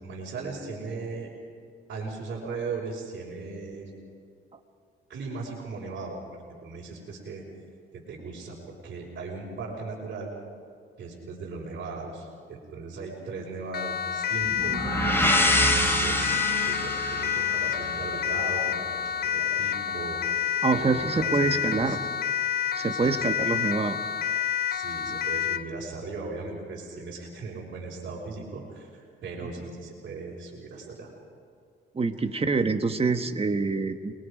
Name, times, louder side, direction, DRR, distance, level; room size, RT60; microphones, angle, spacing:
voice 1, 0.0-1.3 1.9-3.9 5.1-7.4 7.9-10.3 11.0-14.8 15.4-22.0 22.9-23.2 24.7-31.1, right 3 dB, 55° right, -5 dB, 5.5 m, -38 dB
Siren, 13.7-25.7, left 9 dB, 50° left, 0.5 m, -29 dB
sound 1, 14.5-18.3, equal, 10° left, 3.2 m, -26 dB
voice 2, 20.6-22.0 22.7-24.0 29.4-29.5 31.9-34.1, right 4 dB, 30° right, 7 dB, 1.5 m, -26 dB
29.0 x 22.0 x 5.2 m, 2.2 s
cardioid pair, 95°, 21 cm